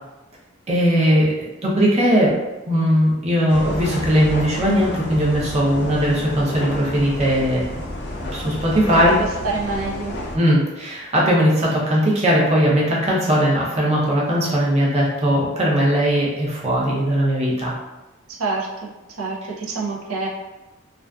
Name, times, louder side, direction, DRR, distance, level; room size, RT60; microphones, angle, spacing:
voice 1, 0.7-2.3 2.7-7.7 8.3-9.2 10.3-17.7, equal, 30° right, -5 dB, 0.6 m, -19 dB
sound 1, 3.5-10.4, left 1 dB, 50° left, 0.4 m, -30 dB
voice 2, 9.2-10.2 18.3-18.9 19.2-20.3, right 3 dB, 85° right, -1 dB, 0.5 m, -27 dB
2.4 x 2.4 x 2.2 m, 1.1 s
head